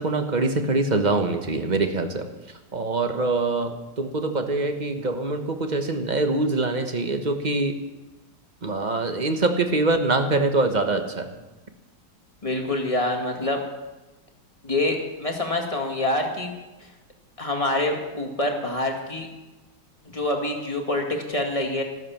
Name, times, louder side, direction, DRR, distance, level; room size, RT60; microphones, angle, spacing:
voice 1, 0.0-2.2 2.7-7.7 8.6-11.3, right 2 dB, 25° right, 6 dB, 1.2 m, -24 dB
voice 2, 12.4-13.6 14.6-16.5 16.8-16.9 17.4-19.3 20.1-21.8, left 1 dB, 20° left, 2 dB, 2.2 m, -26 dB
13.5 x 12.5 x 7.3 m, 1.1 s
omnidirectional pair, 2.0 m